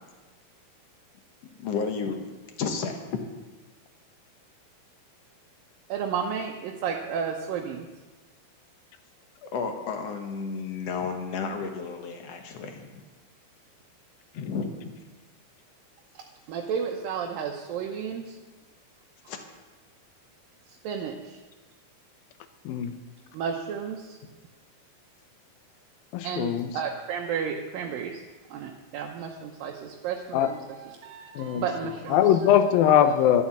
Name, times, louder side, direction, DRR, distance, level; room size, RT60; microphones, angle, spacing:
voice 1, 1.6-2.3 2.6-3.0 9.4-13.0 14.3-15.0 19.3-19.4, left 5 dB, 65° left, 5 dB, 1.7 m, -32 dB
voice 2, 5.9-7.9 16.5-18.4 20.7-21.4 23.3-24.2 26.2-28.2 28.5-32.6, right 7 dB, 75° right, 1 dB, 2.5 m, -32 dB
voice 3, 22.7-23.0 26.1-26.7 30.3-30.5 31.4-31.6 32.1-33.4, left 10 dB, 80° left, 10 dB, 2.5 m, -21 dB
12.5 x 9.9 x 7.2 m, 1.2 s
omnidirectional pair, 4.3 m